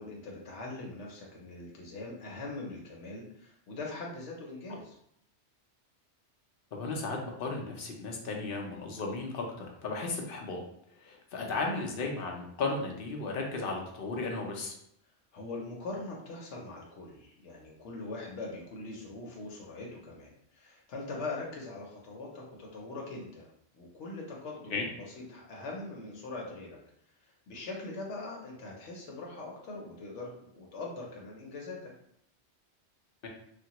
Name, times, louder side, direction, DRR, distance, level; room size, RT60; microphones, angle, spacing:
voice 1, 0.0-5.0 11.4-11.5 15.3-23.5 23.7-24.7 25.2-26.8 27.2-31.8, left 2 dB, 90° left, -2 dB, 1.0 m, -42 dB
voice 2, 6.7-10.6 11.0-14.8 24.7-24.8 33.2-33.3, left 3 dB, 60° left, 0 dB, 0.7 m, -35 dB
3.3 x 2.2 x 2.8 m, 0.72 s
omnidirectional pair, 1.2 m